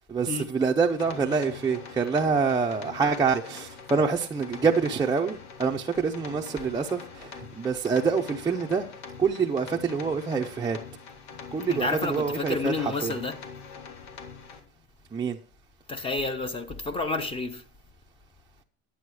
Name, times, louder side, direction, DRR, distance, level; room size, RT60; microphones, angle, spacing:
voice 1, 0.1-8.9 9.2-10.8 11.5-13.1 15.1-15.4, right 5 dB, 15° right, 0.6 m, -26 dB
sound 1, 0.9-14.6, left 6 dB, 90° left, 2.1 m, -44 dB
voice 2, 11.7-13.4 15.9-17.6, left 3 dB, 20° left, 0.9 m, -30 dB
11.0 x 8.5 x 4.7 m
cardioid pair, 155°, 29 cm